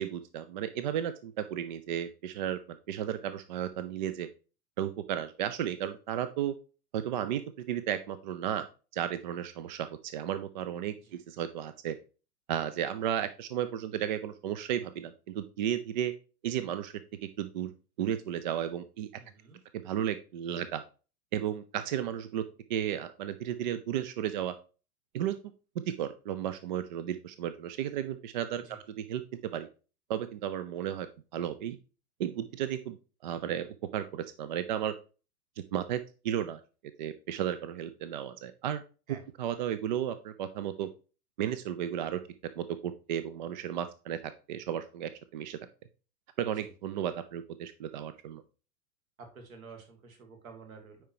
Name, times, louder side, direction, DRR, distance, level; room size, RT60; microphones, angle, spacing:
voice 1, 0.0-2.6 2.9-4.3 4.8-6.5 6.9-8.7 8.9-12.0 12.5-16.1 16.4-16.9 17.4-17.7 18.0-19.1 19.8-20.8 21.3-22.4 22.7-24.5 25.1-25.3 25.9-28.6 29.0-29.2 29.5-29.7 30.1-31.1 31.3-31.8 32.2-33.0 33.2-33.7 33.9-34.9 35.7-36.6 37.0-38.8 39.4-40.9 41.4-42.2 42.6-45.6 46.4-48.4, right 10 dB, 35° right, 12 dB, 0.4 m, -33 dB
voice 2, 19.2-19.6 28.6-28.8 39.1-39.2 46.6-46.7 49.2-51.0, right 5 dB, 60° right, 4 dB, 2.1 m, -50 dB
9.2 x 4.5 x 2.8 m, 0.34 s
figure-of-eight pair, 95°, 45 cm